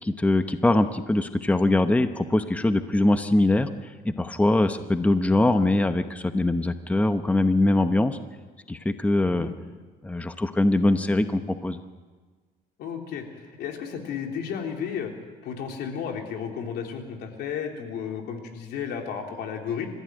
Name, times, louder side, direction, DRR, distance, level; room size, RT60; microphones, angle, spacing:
voice 1, 0.0-8.2 8.7-9.5 10.0-11.8, left 2 dB, 10° left, 9 dB, 0.9 m, -22 dB
voice 2, 12.8-15.1 15.4-19.9, left 7 dB, 75° left, 2 dB, 3.7 m, -33 dB
27.0 x 15.0 x 9.2 m, 1.4 s
cardioid pair, 110°, 17 cm